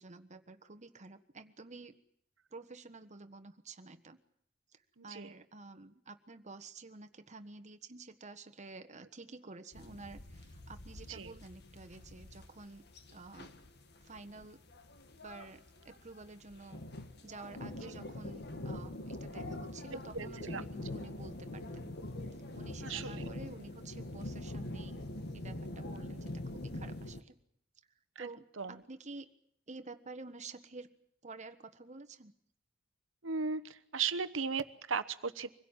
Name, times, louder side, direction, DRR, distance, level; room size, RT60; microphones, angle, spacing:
voice 1, 0.0-2.0 2.5-4.2 4.7-12.8 13.1-13.5 14.0-14.6 15.2-16.8 17.2-21.9 22.5-25.0 25.3-27.4 28.2-29.3 29.7-30.9 31.2-32.3, right 3 dB, 35° right, 8 dB, 1.4 m, -50 dB
voice 2, 5.0-5.3 11.1-11.3 19.9-20.6 22.8-23.3 28.2-28.3 28.6-28.8 33.2-35.5, right 5 dB, 75° right, 12 dB, 1.1 m, -37 dB
sound 1, 9.7-27.2, left 1 dB, 55° left, 1.8 m, -44 dB
25.0 x 16.5 x 9.0 m, 0.67 s
head